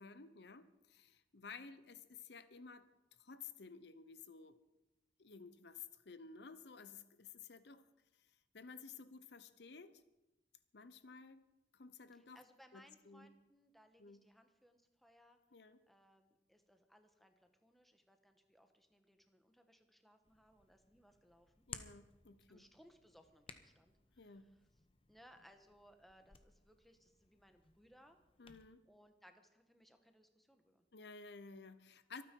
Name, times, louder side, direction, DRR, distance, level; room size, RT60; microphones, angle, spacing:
voice 1, 0.0-2.9 3.2-4.6 5.2-7.8 8.2-8.3 8.5-10.0 10.7-11.5 11.7-12.4 12.7-13.3 14.0-14.2 15.5-15.8 21.7-22.7 24.2-24.5 28.4-28.8 30.9-32.2, left 5 dB, 70° left, 13 dB, 0.8 m, -54 dB
voice 2, 12.1-15.4 15.9-21.7 22.5-24.6 25.1-28.2 28.9-30.8, equal, ahead, 6 dB, 1.2 m, -66 dB
Hands, 20.2-28.7, left 6 dB, 30° left, 0.9 m, -59 dB
25.0 x 9.4 x 4.6 m, 1.0 s
head